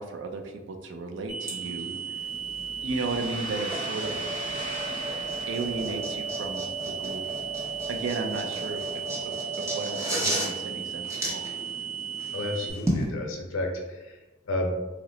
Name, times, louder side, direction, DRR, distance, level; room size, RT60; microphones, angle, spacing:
voice 1, 0.0-2.2 2.8-4.2 5.1-7.3 7.9-11.5, right 3 dB, 65° right, 4 dB, 0.4 m, -35 dB
sound 1, 1.3-12.7, right 8 dB, 85° right, 1.4 m, -35 dB
sound 2, 1.4-13.0, right 1 dB, 15° right, 0.6 m, -35 dB
sound 3, 2.2-9.2, left 1 dB, 25° left, 0.7 m, -42 dB
voice 2, 12.3-14.2 14.5-14.7, left 1 dB, 85° left, 1 dB, 0.6 m, -31 dB
2.9 x 2.1 x 3.7 m, 1.1 s
head